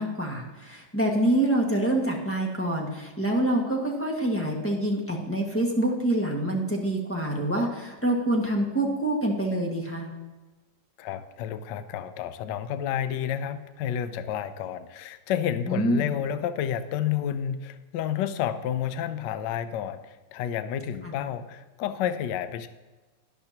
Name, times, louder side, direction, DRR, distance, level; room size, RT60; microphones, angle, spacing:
voice 1, 0.0-10.1 15.7-16.1 21.0-21.2, right 1 dB, 5° left, -1 dB, 1.4 m, -26 dB
voice 2, 11.0-22.7, left 9 dB, 70° left, 11 dB, 1.2 m, -30 dB
12.5 x 10.5 x 2.9 m, 1.2 s
omnidirectional pair, 2.2 m